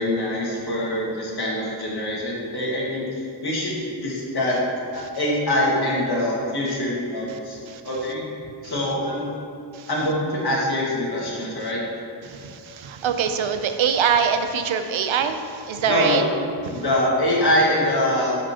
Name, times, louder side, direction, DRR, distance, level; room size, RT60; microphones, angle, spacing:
voice 1, 0.0-4.6 4.9-7.6 7.8-8.3 8.6-9.3 9.9-11.9 15.9-16.3 16.7-18.3, left 1 dB, 55° left, -5 dB, 1.7 m, -24 dB
voice 2, 12.3-16.2 16.7-16.8, right 7 dB, 80° right, 8 dB, 0.6 m, -23 dB
10.5 x 5.1 x 2.8 m, 2.5 s
wide cardioid pair, 145°, 46 cm